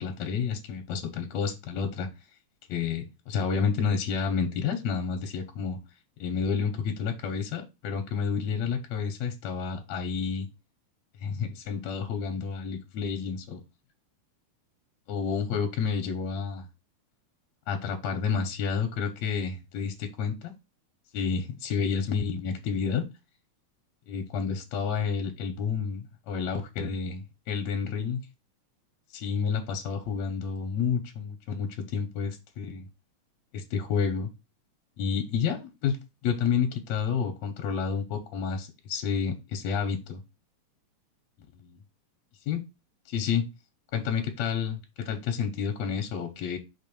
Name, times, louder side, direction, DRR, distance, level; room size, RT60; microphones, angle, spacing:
voice 1, 0.0-2.1 2.7-5.8 6.2-10.5 11.2-13.4 15.1-16.7 17.7-20.5 21.1-23.1 24.1-28.2 29.1-32.9 33.5-34.3 35.0-36.0 36.2-40.2 42.5-42.6 43.1-43.5 43.9-46.6, left 6 dB, 70° left, 2.1 m, -30 dB
5.6 x 3.8 x 5.3 m
omnidirectional pair, 3.5 m